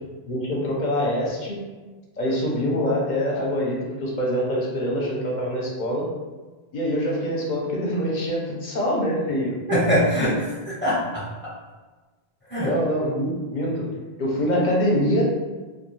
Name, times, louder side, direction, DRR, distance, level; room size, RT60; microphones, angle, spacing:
voice 1, 0.3-1.6 2.2-6.1 6.7-9.6 12.6-13.9 14.2-15.2, equal, 55° left, -3 dB, 0.6 m, -24 dB
voice 2, 9.7-11.5 12.5-12.8, equal, 15° left, -8 dB, 0.6 m, -23 dB
2.3 x 2.3 x 3.1 m, 1.3 s
omnidirectional pair, 1.1 m